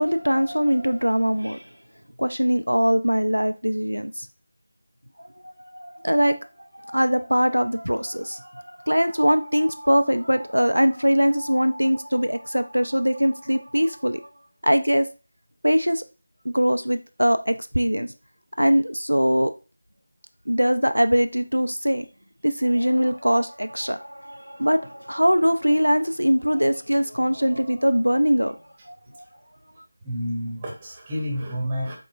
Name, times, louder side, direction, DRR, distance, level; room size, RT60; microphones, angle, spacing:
voice 1, 0.0-1.7 2.2-4.3 5.2-14.3 14.6-15.1 15.6-16.0 16.5-18.1 18.6-19.5 20.5-22.1 22.4-28.6 28.9-29.2, equal, 85° right, 0.3 m, -22 dB
voice 2, 30.0-32.0, equal, 20° right, 0.8 m, -29 dB
3.7 x 3.7 x 2.3 m
figure-of-eight pair, 165°, 0 cm